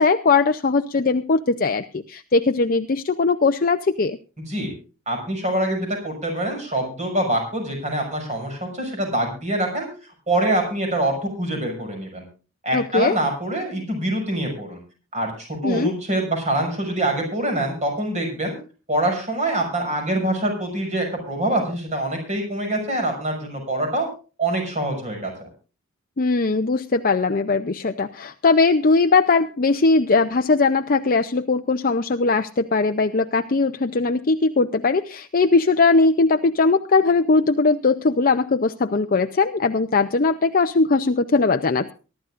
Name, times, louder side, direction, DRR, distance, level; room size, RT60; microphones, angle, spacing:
voice 1, 0.0-4.2 12.7-13.2 15.6-15.9 26.2-41.9, left 3 dB, 40° left, 8 dB, 0.6 m, -20 dB
voice 2, 4.4-4.7 5.1-12.2 12.6-14.8 15.1-18.6 18.9-24.1 24.4-25.5, right 1 dB, 35° right, 3 dB, 6.6 m, -25 dB
23.5 x 12.5 x 2.5 m, 0.35 s
head